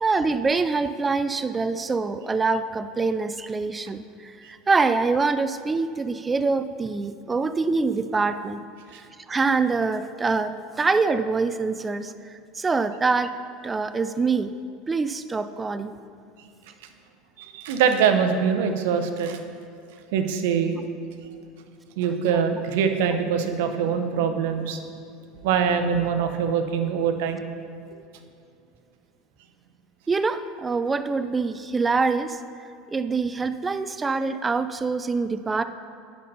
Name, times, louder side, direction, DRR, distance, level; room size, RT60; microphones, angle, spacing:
voice 1, 0.0-8.6 8.9-13.3 13.6-14.5 14.9-15.9 30.1-32.4 32.9-35.6, right 4 dB, 20° right, 11 dB, 0.3 m, -25 dB
voice 2, 17.4-19.4 20.1-20.8 22.0-24.8 25.4-27.4, right 7 dB, 80° right, 8 dB, 0.7 m, -23 dB
10.5 x 4.2 x 5.4 m, 2.4 s
supercardioid pair, 110°, 0 cm